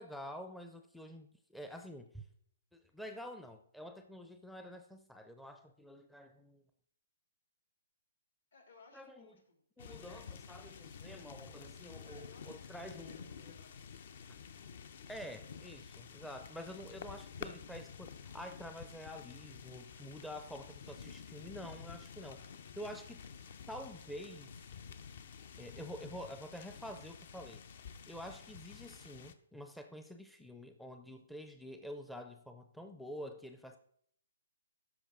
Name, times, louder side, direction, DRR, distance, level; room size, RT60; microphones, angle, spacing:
voice 1, 0.0-2.3 2.7-6.6 8.9-9.3 9.8-13.5 15.1-22.4 22.8-23.2 23.7-24.5 25.6-27.6 28.1-33.8, equal, ahead, 6 dB, 0.5 m, -48 dB
voice 2, 8.5-10.4 12.0-14.4 22.2-22.9, left 4 dB, 75° left, 3 dB, 2.7 m, -63 dB
sound 1, 9.8-29.3, left 6 dB, 55° left, 0.6 m, -50 dB
12.5 x 5.0 x 3.7 m, 0.64 s
hypercardioid pair, 155°, 0 cm